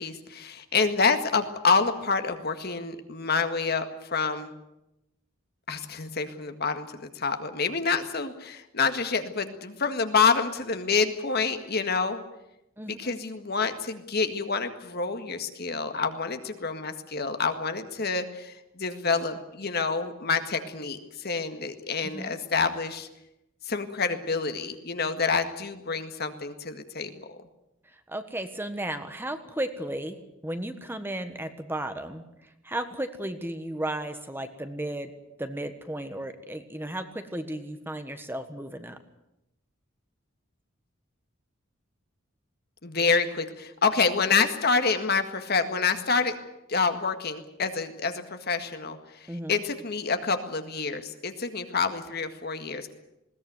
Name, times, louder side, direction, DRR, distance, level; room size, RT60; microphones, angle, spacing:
voice 1, 0.0-4.5 5.7-12.2 12.9-23.1 23.6-27.4 42.8-46.4 46.7-52.9, left 5 dB, 50° left, 8 dB, 1.8 m, -27 dB
voice 2, 12.8-13.2 22.1-22.4 28.1-30.2 30.4-32.2 32.6-35.1 35.4-39.0 49.3-49.6, right 1 dB, 10° right, 8 dB, 1.4 m, -34 dB
20.5 x 17.5 x 9.5 m, 0.88 s
head